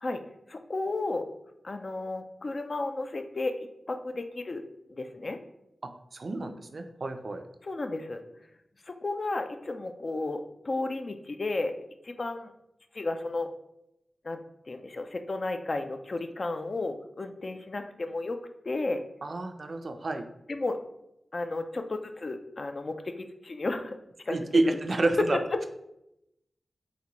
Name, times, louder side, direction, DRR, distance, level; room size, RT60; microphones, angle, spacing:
voice 1, 0.5-1.3 1.6-4.6 4.9-5.4 7.6-8.2 8.9-11.8 12.0-12.5 12.9-13.5 14.2-14.4 14.7-18.4 18.7-19.0 20.5-20.8 21.3-24.0 24.3-24.8 25.2-25.7, left 2 dB, 55° left, 7 dB, 0.4 m, -33 dB
voice 2, 5.8-7.4 19.2-20.3 24.3-25.4, right 2 dB, 65° right, 7 dB, 0.3 m, -29 dB
3.9 x 2.2 x 2.9 m, 0.82 s
cardioid pair, 45°, 0 cm